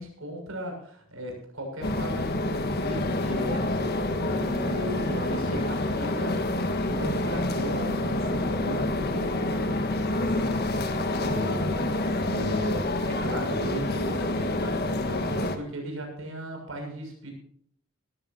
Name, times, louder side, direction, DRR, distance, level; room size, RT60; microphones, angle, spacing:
voice 1, 0.0-17.3, right 1 dB, 80° right, 2 dB, 6.7 m, -37 dB
sound 1, 1.8-15.6, left 2 dB, 50° left, 1.5 m, -27 dB
20.0 x 14.0 x 2.8 m, 0.62 s
head